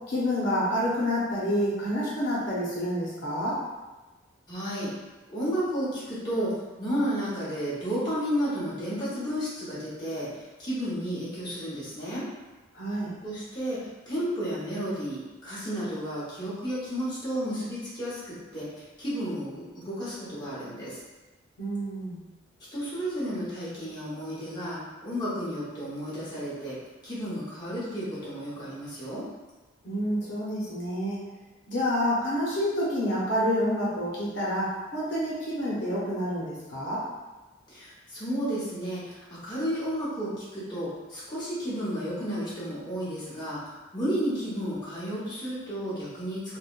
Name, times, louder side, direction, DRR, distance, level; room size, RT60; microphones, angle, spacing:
voice 1, 0.1-3.6 12.7-13.1 21.6-22.2 29.8-31.2 31.7-37.0, equal, 65° left, -7 dB, 0.8 m, -28 dB
voice 2, 4.5-4.9 5.3-6.5 6.8-12.2 13.2-13.8 14.1-21.0 22.7-26.8 27.0-29.2 37.7-43.6 43.9-46.6, equal, 20° left, -10 dB, 0.9 m, -32 dB
3.5 x 2.1 x 2.4 m, 1.2 s
head